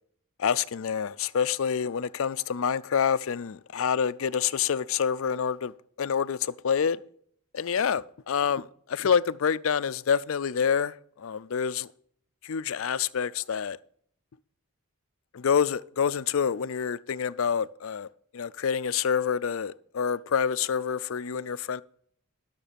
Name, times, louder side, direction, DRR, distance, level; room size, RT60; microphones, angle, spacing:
voice 1, 0.4-5.7 6.0-7.0 7.5-11.9 12.4-13.8 15.3-18.1 18.3-21.8, left 7 dB, 65° left, 0.4 m, -27 dB
12.5 x 6.8 x 5.1 m
head